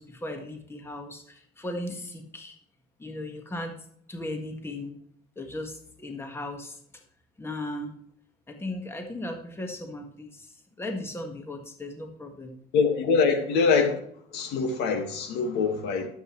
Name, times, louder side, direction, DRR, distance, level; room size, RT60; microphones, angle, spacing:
voice 1, 0.0-2.6 3.0-3.8 4.1-5.0 5.4-6.8 7.4-8.0 8.5-12.5, left 1 dB, 15° left, 1.6 m, -37 dB
voice 2, 12.7-14.0 14.3-16.1, left 5 dB, 90° left, 1.9 m, -24 dB
12.0 x 7.9 x 3.2 m
cardioid pair, 110°, 17 cm